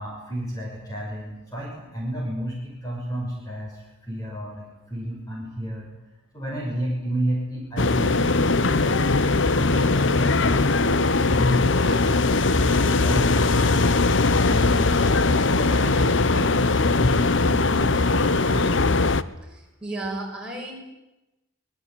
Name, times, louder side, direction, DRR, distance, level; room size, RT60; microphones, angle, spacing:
voice 1, 0.0-5.9 6.3-9.0 9.4-15.1 15.5-18.9, right 1 dB, 15° left, -2 dB, 6.3 m, -32 dB
sound 1, 7.8-19.2, left 3 dB, 60° left, 1.0 m, -20 dB
voice 2, 19.5-20.7, right 2 dB, 5° right, -3 dB, 7.6 m, -33 dB
25.0 x 20.5 x 9.6 m, 0.98 s
head